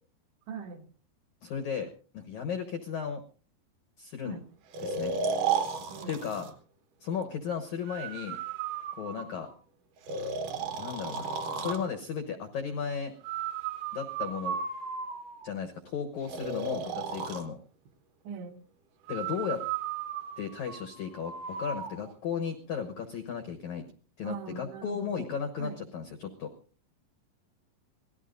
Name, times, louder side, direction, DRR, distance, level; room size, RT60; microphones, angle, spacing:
voice 1, 0.5-0.9 4.2-4.5 5.9-6.2 18.3-18.7 24.2-25.3 25.6-25.9, right 5 dB, 80° right, 5 dB, 3.7 m, -41 dB
voice 2, 1.4-1.9 2.1-3.2 4.0-4.4 4.8-5.1 6.1-6.5 7.0-8.4 9.0-9.5 10.8-11.3 11.5-13.1 13.9-14.6 15.4-17.6 19.1-19.6 20.4-23.8 24.2-26.5, left 7 dB, 85° left, 5 dB, 1.6 m, -35 dB
Breathing, 4.7-6.5 7.9-9.5 10.1-11.9 13.2-15.5 16.3-17.5 19.1-21.9, right 5 dB, 60° right, 2.3 m, -34 dB
26.0 x 18.0 x 2.6 m, 0.39 s
omnidirectional pair, 5.1 m